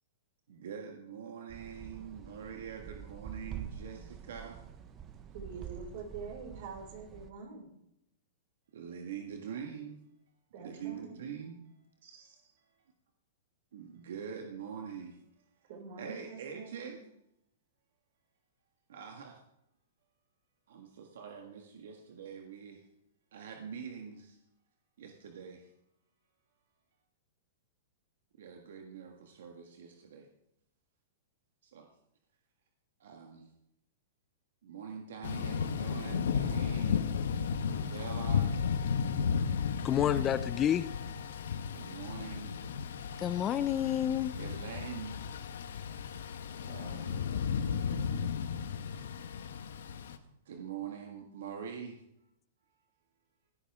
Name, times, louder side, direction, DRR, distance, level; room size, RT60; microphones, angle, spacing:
voice 1, 0.5-4.6 8.7-10.0 10.6-11.6 12.0-12.5 13.7-15.2 16.0-17.0 18.9-19.4 20.7-22.9 23.3-24.4 25.0-25.7 28.4-30.3 31.6-31.9 33.0-33.5 34.6-37.1 37.6-38.7 41.7-42.6 44.4-45.3 46.6-47.2 50.4-52.0, right 7 dB, 75° right, 3 dB, 1.7 m, -44 dB
sound 1, 1.5-7.3, right 9 dB, 25° right, 1.0 m, -46 dB
voice 2, 5.3-7.7 10.5-11.2 15.7-17.0, right 5 dB, 55° right, 0 dB, 5.6 m, -45 dB
Thunder / Rain, 35.2-50.2, left 6 dB, 80° left, 1.2 m, -34 dB
voice 3, 39.8-40.9 43.2-44.4, left 10 dB, 20° left, 14 dB, 0.5 m, -29 dB
17.5 x 10.0 x 3.6 m, 0.79 s
hypercardioid pair, 145°, 0 cm